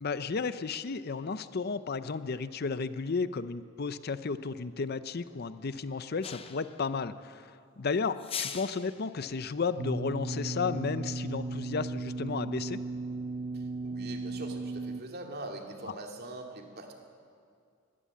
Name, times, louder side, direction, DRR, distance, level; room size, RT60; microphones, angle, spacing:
voice 1, 0.0-12.8, left 4 dB, 50° left, 13 dB, 0.6 m, -33 dB
sound 1, 6.2-6.8 8.2-9.0, left 7 dB, 30° left, 0.9 m, -39 dB
sound 2, 9.8-15.0, right 2 dB, 25° right, 0.5 m, -36 dB
voice 2, 13.5-17.0, right 2 dB, 50° right, 2 dB, 2.5 m, -43 dB
20.0 x 15.5 x 8.5 m, 2.3 s
head